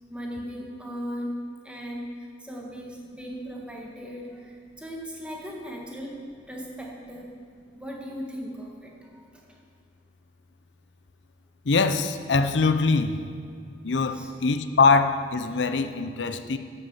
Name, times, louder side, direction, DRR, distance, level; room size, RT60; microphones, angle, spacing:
voice 1, 0.1-6.2 6.5-7.4 7.7-9.5 14.1-14.3 15.5-15.6, equal, 5° right, -1 dB, 1.7 m, -38 dB
voice 2, 11.7-13.2 13.8-16.6, left 4 dB, 75° left, 9 dB, 0.6 m, -23 dB
11.0 x 8.2 x 7.3 m, 2.3 s
head